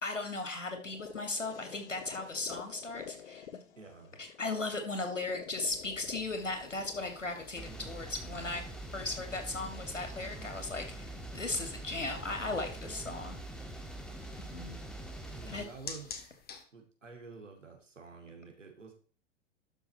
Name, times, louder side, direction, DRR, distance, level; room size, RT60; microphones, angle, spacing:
voice 1, 0.0-3.5 4.2-8.7 8.9-13.4 14.4-14.8 15.5-15.6, left 3 dB, 85° left, 5 dB, 2.7 m, -37 dB
sound 1, 0.7-8.7, left 9 dB, 65° left, 1.0 m, -50 dB
voice 2, 3.8-4.4 15.3-16.4 16.7-18.9, right 4 dB, 85° right, 2 dB, 2.8 m, -50 dB
sound 2, 5.7-16.6, left 5 dB, 25° left, 1.9 m, -52 dB
sound 3, 7.6-15.6, right 2 dB, ahead, 1.6 m, -44 dB
12.0 x 6.4 x 4.4 m, 0.40 s
figure-of-eight pair, 95°, 37 cm